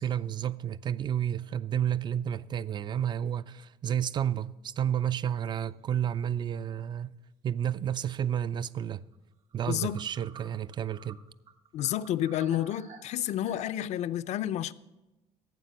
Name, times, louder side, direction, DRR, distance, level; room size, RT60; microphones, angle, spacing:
voice 1, 0.0-7.2 7.4-9.0 9.5-11.2, right 9 dB, 35° right, 0.4 m, -31 dB
sound 1, 6.2-6.3 8.7-8.8 9.1-9.2 9.5-13.7, right 6 dB, 55° right, 1.6 m, -52 dB
voice 2, 9.7-10.0 11.7-14.7, left 12 dB, 60° left, 0.5 m, -30 dB
12.0 x 8.2 x 6.4 m
cardioid pair, 100°, 13 cm